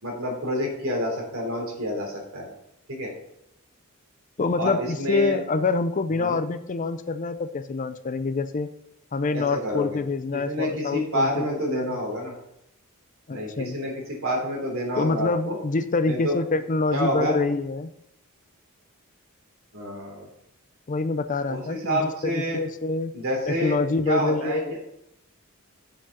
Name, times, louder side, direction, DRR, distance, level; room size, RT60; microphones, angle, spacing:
voice 1, 0.0-2.5 2.9-3.1 4.6-5.3 6.2-6.4 9.3-10.0 10.4-12.3 13.3-15.6 16.0-16.3 16.9-17.4 19.7-20.3 21.5-22.6 23.1-23.8 24.0-24.6, equal, 70° right, 0 dB, 3.3 m, -28 dB
voice 2, 4.4-8.7 9.1-11.9 13.3-13.8 15.0-17.9 20.9-23.1 23.5-24.8, left 3 dB, 35° left, 12 dB, 0.5 m, -26 dB
7.4 x 7.1 x 5.8 m, 0.80 s
head